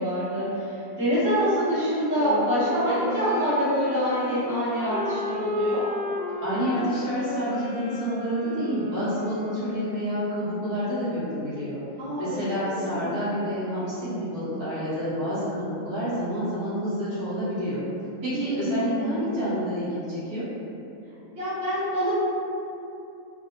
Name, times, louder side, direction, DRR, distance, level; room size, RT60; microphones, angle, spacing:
voice 1, 0.0-5.9 12.0-13.1 18.3-19.3 21.3-22.1, equal, 55° right, -12 dB, 1.4 m, -26 dB
Wind instrument woodwind instrument, 2.1-10.4, left 2 dB, 65° left, 0.7 m, -33 dB
voice 2, 6.4-11.8 12.2-17.8 18.2-20.5, equal, 80° right, -12 dB, 1.6 m, -29 dB
3.3 x 2.5 x 2.6 m, 2.8 s
omnidirectional pair, 1.7 m